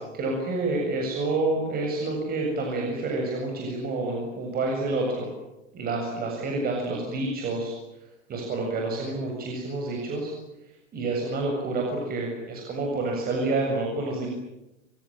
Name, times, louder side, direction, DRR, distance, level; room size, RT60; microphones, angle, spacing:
voice 1, 0.0-5.3 5.7-7.7 8.3-10.3 10.9-14.3, right 2 dB, 25° right, 0 dB, 7.5 m, -28 dB
26.0 x 25.0 x 9.0 m, 0.93 s
hypercardioid pair, 140°, 37 cm